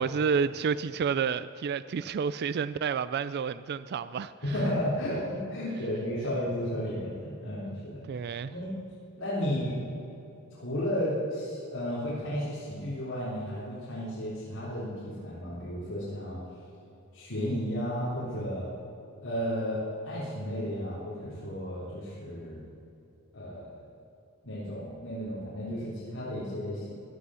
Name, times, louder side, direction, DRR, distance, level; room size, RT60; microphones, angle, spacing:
voice 1, 0.0-4.3 8.1-8.5, right 6 dB, 50° right, 14 dB, 0.3 m, -30 dB
voice 2, 4.4-8.0 8.5-8.7 9.2-9.9 10.5-16.4 17.1-18.7 19.2-19.8 20.0-22.6 23.3-23.7 24.4-26.9, equal, 65° left, -9 dB, 3.6 m, -33 dB
16.5 x 11.5 x 6.3 m, 2.9 s
head